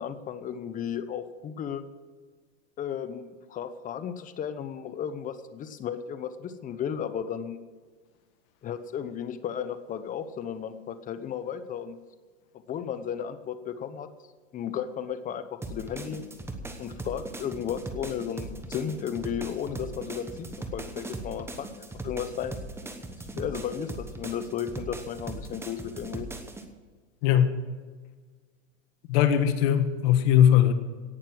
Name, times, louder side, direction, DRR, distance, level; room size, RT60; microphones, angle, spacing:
voice 1, 0.0-1.8 2.8-7.6 8.6-12.0 12.7-14.1 14.5-16.2 16.8-20.5 20.7-22.5 23.3-26.3, left 8 dB, 20° left, 12 dB, 0.9 m, -34 dB
sound 1, 15.6-26.6, right 2 dB, 5° right, 1.1 m, -39 dB
voice 2, 29.1-30.7, left 10 dB, 50° left, 9 dB, 1.6 m, -20 dB
17.5 x 6.7 x 7.7 m, 1.5 s
supercardioid pair, 135°, 38 cm